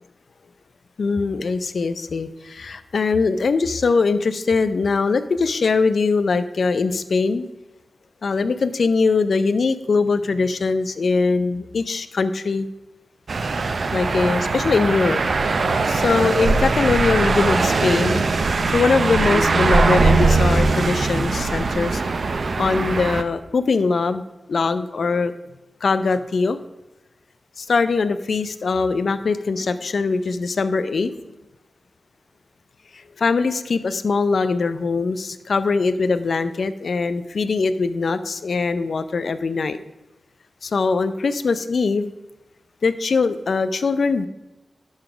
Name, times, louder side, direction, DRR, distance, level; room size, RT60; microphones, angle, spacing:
voice 1, 1.0-7.5 8.2-12.7 13.9-15.2 15.9-18.3 18.7-22.0 22.6-24.2 24.5-25.3 25.8-26.6 27.6-31.1 33.2-39.8 40.6-42.1 42.8-44.3, left 4 dB, 65° left, 12 dB, 0.5 m, -21 dB
sound 1, 13.3-23.2, right 3 dB, 55° right, 0.5 m, -20 dB
11.5 x 3.9 x 4.9 m, 1.0 s
wide cardioid pair, 125°, 0 cm